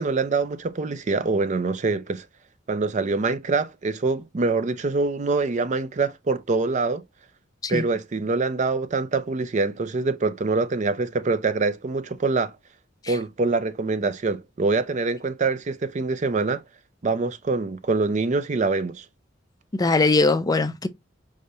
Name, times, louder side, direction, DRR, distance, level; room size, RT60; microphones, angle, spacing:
voice 1, 0.0-2.2 2.7-7.0 7.7-12.5 13.1-16.6 17.0-19.0, right 3 dB, 40° right, 0.5 m, -24 dB
voice 2, 19.8-20.9, left 3 dB, 20° left, 0.4 m, -21 dB
4.8 x 3.3 x 2.7 m
head